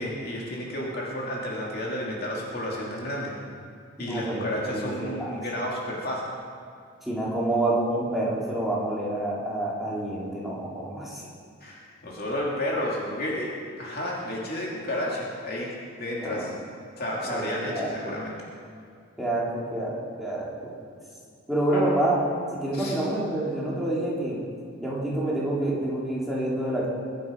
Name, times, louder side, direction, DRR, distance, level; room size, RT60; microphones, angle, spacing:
voice 1, 0.0-3.3 4.0-6.3 11.6-13.5 13.8-16.5 17.0-18.4 21.7-21.9 22.7-23.0, left 1 dB, 45° left, -4 dB, 2.8 m, -31 dB
voice 2, 4.0-4.4 4.7-5.4 7.0-11.3 16.2-16.5 17.3-17.9 19.2-20.7 21.5-22.2 22.5-24.4 24.8-26.9, right 1 dB, ahead, -6 dB, 3.2 m, -28 dB
22.5 x 9.3 x 5.4 m, 2.3 s
head